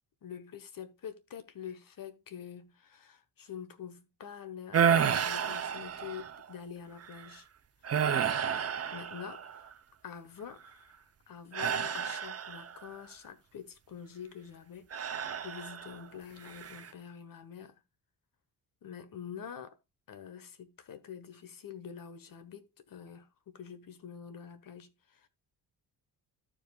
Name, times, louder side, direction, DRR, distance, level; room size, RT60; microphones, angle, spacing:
voice 1, 0.2-7.5 8.1-8.5 8.9-9.7 10.0-11.0 11.3-17.7 18.8-19.8 20.1-25.3, left 8 dB, 55° left, 1.3 m, -46 dB
Man Sighing, 4.7-6.4 7.0-7.3 7.8-9.7 11.5-12.9 14.9-16.0 16.4-16.9, right 7 dB, 35° right, 0.8 m, -31 dB
14.0 x 5.1 x 2.4 m
cardioid pair, 75°, 41 cm